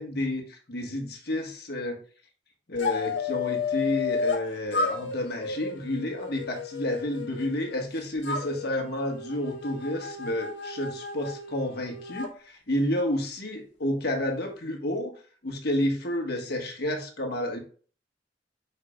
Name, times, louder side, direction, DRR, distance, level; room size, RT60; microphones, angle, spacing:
voice 1, 0.0-2.0 2.7-15.1 15.4-17.6, left 1 dB, 60° left, 2 dB, 1.6 m, -30 dB
sound 1, 2.8-4.4 4.7-7.8 8.2-12.3, left 5 dB, 85° left, 1.5 m, -33 dB
8.3 x 5.8 x 2.4 m, 0.41 s
head